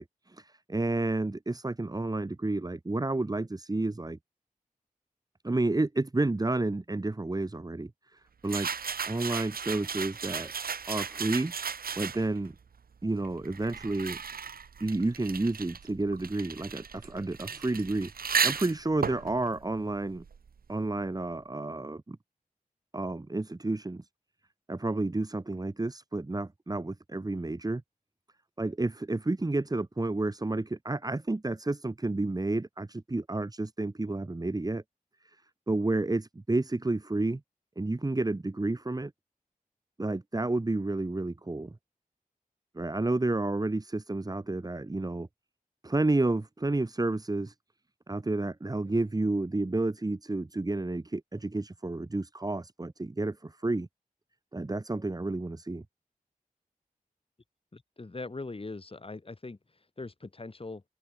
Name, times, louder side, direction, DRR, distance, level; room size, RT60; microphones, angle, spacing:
voice 1, 0.0-4.2 5.4-8.7 9.1-10.5 10.9-11.5 12.0-12.5 13.0-14.2 14.8-20.2 20.7-22.2 22.9-24.1 24.7-27.8 28.6-34.8 35.2-35.4 35.7-37.4 37.8-39.1 40.0-41.8 42.7-45.3 45.8-47.5 48.1-53.9 54.5-55.8, right 2 dB, 25° right, 1.0 m, -30 dB
sound 1, 8.5-12.5 13.2-20.7, right 6 dB, 85° right, 0.8 m, -35 dB
voice 2, 57.7-60.8, left 3 dB, 40° left, 1.7 m, -41 dB
open air
wide cardioid pair, 55°, 15 cm